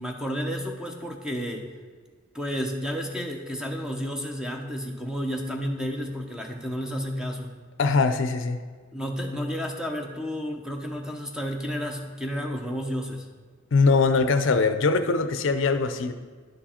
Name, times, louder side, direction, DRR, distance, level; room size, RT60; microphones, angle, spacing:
voice 1, 0.0-1.7 2.3-7.5 8.9-13.3, equal, 5° right, 2 dB, 0.7 m, -31 dB
voice 2, 7.8-8.6 13.7-16.1, left 4 dB, 65° left, 9 dB, 0.5 m, -22 dB
10.5 x 4.7 x 4.3 m, 1.5 s
head